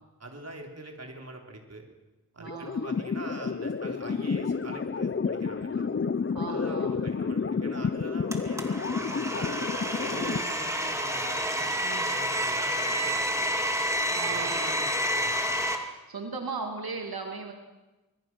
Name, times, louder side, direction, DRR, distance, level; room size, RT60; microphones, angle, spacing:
voice 1, 0.2-1.9 2.3-5.9 6.5-9.6 10.0-13.5 14.2-15.5, right 2 dB, 45° right, 2 dB, 3.9 m, -44 dB
voice 2, 2.4-3.0 5.7-6.9 10.1-10.4 11.8-12.1 14.1-14.8 16.1-17.5, right 4 dB, 80° right, 2 dB, 2.8 m, -38 dB
sound 1, 2.5-10.4, left 5 dB, 35° left, 0.7 m, -30 dB
Domestic sounds home sounds, 8.3-15.8, equal, 10° right, 2.6 m, -29 dB
25.5 x 21.5 x 6.3 m, 1.1 s
wide cardioid pair, 100°, 36 cm